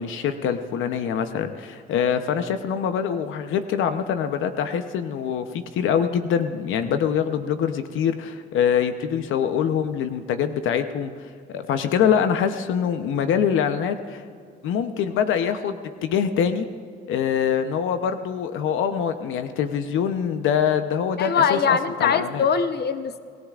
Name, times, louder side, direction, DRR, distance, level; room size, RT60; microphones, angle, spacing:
voice 1, 0.0-14.2 14.6-16.7 17.1-22.4, left 8 dB, 85° left, 8 dB, 0.8 m, -24 dB
voice 2, 21.2-23.2, left 6 dB, 55° left, 10 dB, 0.9 m, -22 dB
28.0 x 16.5 x 2.5 m, 2.2 s
cardioid pair, 90°, 20 cm